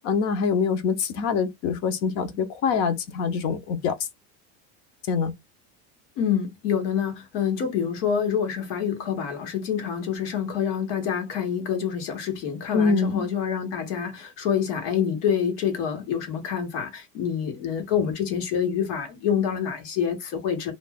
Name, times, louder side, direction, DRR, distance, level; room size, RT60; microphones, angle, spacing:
voice 1, 0.0-3.9 5.1-5.3 12.7-13.3, left 5 dB, 45° left, 0.6 m, -24 dB
voice 2, 6.2-20.7, left 8 dB, 85° left, 1.2 m, -27 dB
2.4 x 2.3 x 3.3 m
cardioid pair, 175°, 35 cm